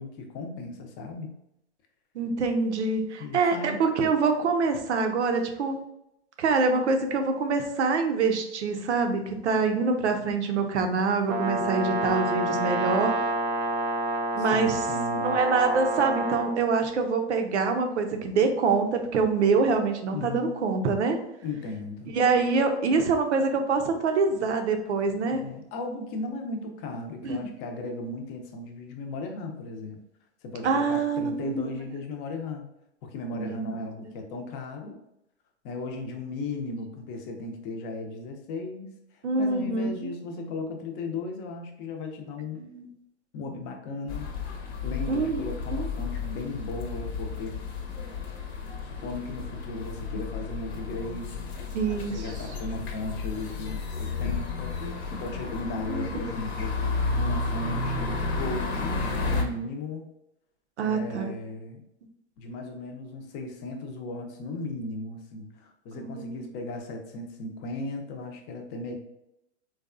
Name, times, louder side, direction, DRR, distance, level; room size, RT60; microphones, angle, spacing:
voice 1, 0.0-1.4 3.2-3.9 14.4-15.4 20.1-20.5 21.4-22.1 25.3-30.0 30.4-32.6 33.0-35.0 35.6-42.6 43.3-44.3 44.8-47.6 48.8-51.5 52.1-54.7 55.1-56.7 57.2-60.1 60.8-61.8 62.4-69.0, left 2 dB, 35° left, 3 dB, 0.6 m, -36 dB
voice 2, 2.1-5.8 6.4-13.2 14.3-14.8 15.1-21.2 22.1-25.4 27.2-27.5 30.6-31.7 33.3-33.7 39.2-40.1 42.6-42.9 45.1-45.4 45.7-45.9 51.7-52.2 55.9-56.1 60.8-61.3 66.0-66.4, right 4 dB, 80° right, 5 dB, 0.7 m, -25 dB
Brass instrument, 11.3-16.5, right 2 dB, 30° right, 0.4 m, -28 dB
sound 1, 44.1-59.4, left 4 dB, 70° left, 0.8 m, -32 dB
4.0 x 2.2 x 2.5 m, 0.83 s
hypercardioid pair, 120°, 34 cm